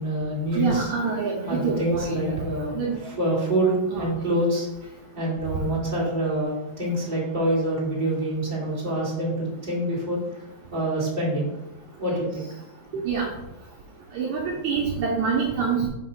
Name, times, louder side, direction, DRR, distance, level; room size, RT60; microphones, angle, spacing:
voice 1, 0.0-0.9 1.5-2.8 3.2-4.7 5.1-10.2 10.7-11.5 12.0-12.5 12.9-13.0, right 1 dB, 15° right, -7 dB, 2.0 m, -26 dB
voice 2, 0.6-2.4 2.7-2.9 3.9-4.1 12.1-12.2 13.1-13.3 14.1-15.9, right 5 dB, 75° right, -2 dB, 1.8 m, -26 dB
7.7 x 3.1 x 5.7 m, 0.92 s
omnidirectional pair, 4.3 m